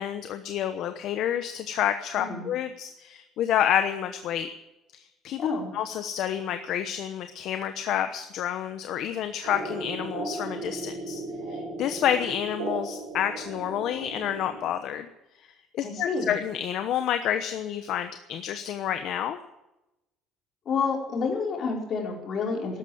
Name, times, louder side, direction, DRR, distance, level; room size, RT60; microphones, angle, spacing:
voice 1, 0.0-4.5 4.9-5.4 5.7-11.2 11.5-15.1 15.4-19.4, left 10 dB, 55° left, 8 dB, 1.0 m, -29 dB
voice 2, 2.2-2.5 5.4-5.7 15.8-16.3 20.7-22.8, left 4 dB, 40° left, 0 dB, 4.6 m, -29 dB
sound 1, 9.4-15.0, right 2 dB, 90° right, 5.6 m, -36 dB
13.5 x 12.0 x 8.7 m, 0.94 s
cardioid pair, 160°, 0 cm